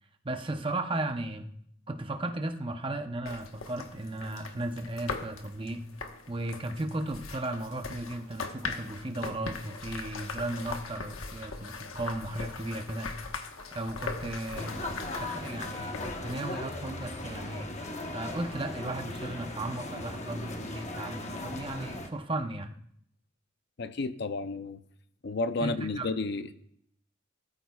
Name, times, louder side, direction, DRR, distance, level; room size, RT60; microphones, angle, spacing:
voice 1, 0.2-1.5 1.9-5.8 6.3-13.2 13.7-14.8 15.2-17.7 18.1-22.8 25.6-26.1, right 2 dB, 25° right, 6 dB, 0.7 m, -35 dB
sound 1, 3.2-16.3, left 4 dB, 80° left, 1.2 m, -40 dB
sound 2, 14.5-22.1, left 2 dB, 35° left, 1.0 m, -38 dB
voice 2, 23.8-24.8 25.2-26.5, left 3 dB, 55° left, 11 dB, 0.6 m, -32 dB
19.5 x 13.5 x 2.4 m, 0.70 s
head